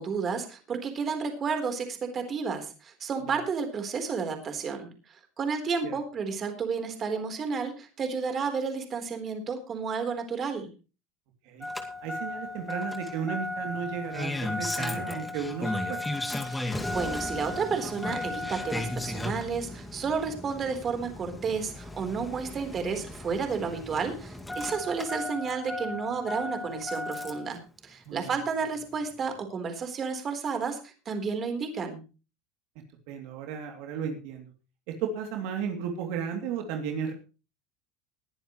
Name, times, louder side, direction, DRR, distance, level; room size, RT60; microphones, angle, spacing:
voice 1, 0.0-10.7 16.5-16.6 16.9-32.0, right 5 dB, 30° right, 6 dB, 3.9 m, -31 dB
Engine starting, 11.6-27.5 28.8-28.9, left 2 dB, 10° left, 2.2 m, -35 dB
voice 2, 12.0-16.0 28.1-28.3 33.1-34.5 34.9-37.1, right 7 dB, 65° right, 4 dB, 2.9 m, -34 dB
20.5 x 11.0 x 3.2 m, 0.32 s
supercardioid pair, 115°, 0 cm